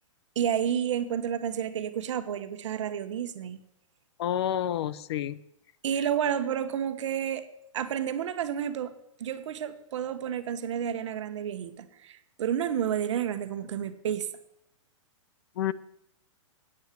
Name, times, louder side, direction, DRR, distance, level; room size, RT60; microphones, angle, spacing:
voice 1, 0.3-3.6 5.8-7.5 7.7-8.9 9.2-14.3, right 9 dB, 65° right, 10 dB, 1.1 m, -30 dB
voice 2, 4.2-5.4 15.6-15.7, left 11 dB, 55° left, 18 dB, 0.5 m, -29 dB
9.1 x 9.0 x 7.5 m, 0.79 s
hypercardioid pair, 155°, 17 cm